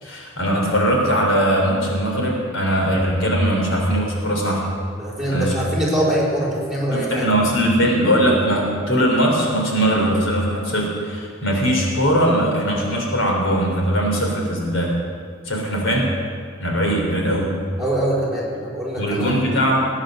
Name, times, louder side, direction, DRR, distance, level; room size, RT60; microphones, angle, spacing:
voice 1, 0.0-4.7 5.3-5.5 6.9-14.9 15.5-16.1 16.6-17.5 19.0-19.8, equal, 80° left, -1 dB, 3.6 m, -20 dB
voice 2, 5.0-7.2 17.8-19.4, right 1 dB, ahead, -6 dB, 4.6 m, -23 dB
19.5 x 9.7 x 6.6 m, 2.1 s
head